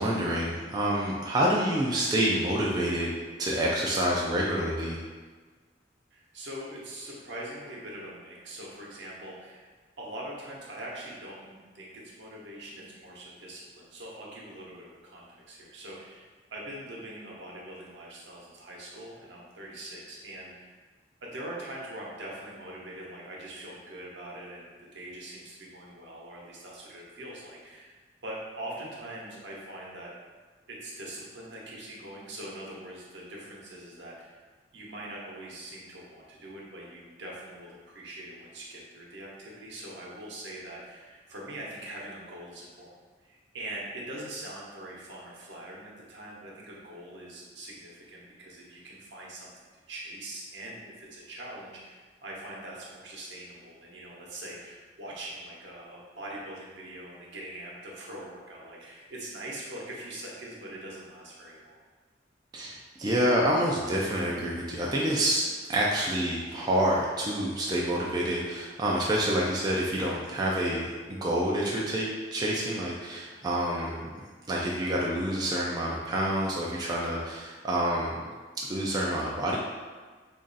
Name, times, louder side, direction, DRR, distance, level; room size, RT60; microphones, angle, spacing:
voice 1, 0.0-3.1 3.4-5.0 62.5-74.1 74.5-78.2 78.6-79.6, right 1 dB, 20° right, -4 dB, 0.3 m, -28 dB
voice 2, 6.1-9.7 10.0-20.8 21.2-27.9 28.2-30.1 30.7-34.4 34.7-42.9 43.2-49.5 49.9-61.8, right 1 dB, 75° right, -4 dB, 0.9 m, -42 dB
3.0 x 2.5 x 3.9 m, 1.4 s
head